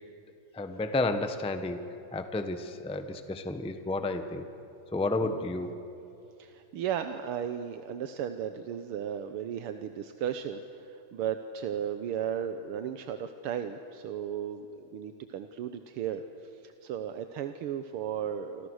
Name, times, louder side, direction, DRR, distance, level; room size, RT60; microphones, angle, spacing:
voice 1, 0.5-1.8 2.1-4.5 4.9-5.7, left 2 dB, 5° left, 8 dB, 0.7 m, -31 dB
voice 2, 6.4-18.7, right 9 dB, 80° right, 8 dB, 1.8 m, -35 dB
28.5 x 26.0 x 6.5 m, 2.9 s
omnidirectional pair, 2.4 m